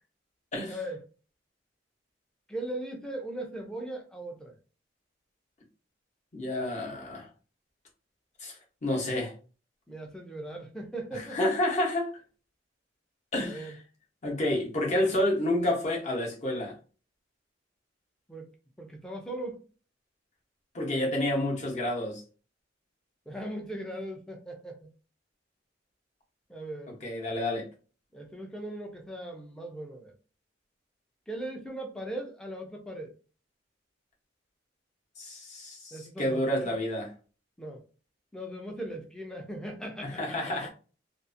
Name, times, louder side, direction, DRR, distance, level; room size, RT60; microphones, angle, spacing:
voice 1, 0.7-1.0 2.5-4.5 9.9-11.4 13.4-13.7 18.3-18.5 18.8-19.6 20.9-21.1 23.3-24.9 26.5-26.9 28.1-30.1 31.3-33.1 35.9-36.7 37.6-37.8 38.3-40.7, right 1 dB, 5° left, 0.4 m, -39 dB
voice 2, 6.3-7.3 8.4-8.5 8.8-9.3 11.3-12.1 13.3-13.7 14.2-16.8 20.7-22.2 27.0-27.7 35.2-37.1 40.2-40.7, left 1 dB, 40° left, 0.8 m, -29 dB
2.6 x 2.3 x 2.5 m
head